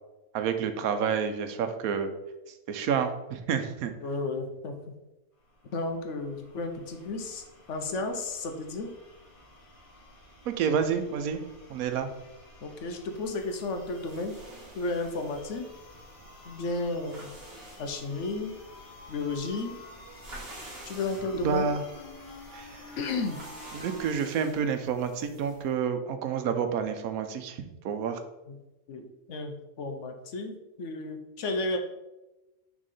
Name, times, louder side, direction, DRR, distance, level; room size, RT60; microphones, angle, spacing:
voice 1, 0.3-2.1 2.7-3.9 10.5-11.4 11.7-12.1 21.4-21.8 22.5-22.8 23.7-27.6 27.8-28.2, right 7 dB, 85° right, 8 dB, 1.1 m, -29 dB
voice 2, 4.0-4.7 5.7-7.4 7.7-8.9 12.6-14.3 14.7-15.7 16.4-17.3 17.8-18.5 19.1-19.8 20.9-21.7 23.0-23.4 28.5-28.6 28.9-31.8, left 3 dB, 60° left, 5 dB, 1.0 m, -33 dB
sound 1, 5.4-24.1, left 1 dB, 25° left, 1.2 m, -50 dB
sound 2, 13.2-25.7, right 1 dB, 45° right, 1.5 m, -50 dB
6.2 x 3.7 x 4.1 m, 1.0 s
omnidirectional pair, 1.5 m